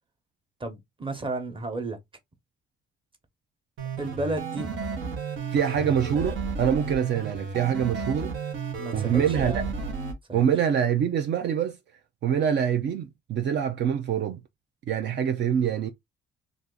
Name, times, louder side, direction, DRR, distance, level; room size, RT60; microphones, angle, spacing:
voice 1, 0.6-2.0 4.0-4.7 8.8-9.7 10.3-10.5, right 2 dB, 25° right, 1.0 m, -33 dB
sound 1, 3.8-10.1, right 5 dB, 80° right, 1.1 m, -33 dB
voice 2, 5.5-8.3 8.9-9.6 10.3-11.8 12.2-14.4 14.9-15.9, right 8 dB, 60° right, 0.5 m, -25 dB
2.7 x 2.5 x 3.7 m
cardioid pair, 90°, 20 cm